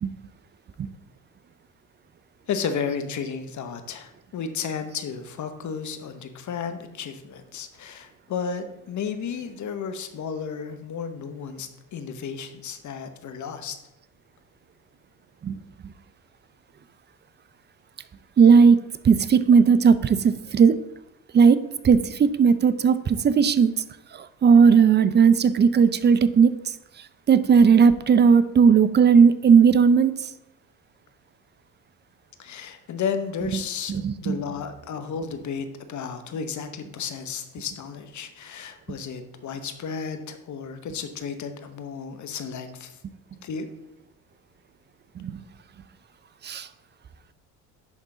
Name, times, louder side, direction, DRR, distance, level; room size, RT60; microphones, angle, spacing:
voice 1, 2.5-13.8 32.4-43.0 43.4-43.7, left 6 dB, 50° left, 9 dB, 0.9 m, -33 dB
voice 2, 18.4-20.7 21.3-21.6 21.8-23.7 24.1-26.5 27.3-30.1 33.5-33.6 33.9-34.4 45.2-45.4 46.4-46.7, right 6 dB, 30° right, 15 dB, 0.5 m, -17 dB
10.5 x 3.7 x 3.8 m, 0.91 s
supercardioid pair, 70°, 39 cm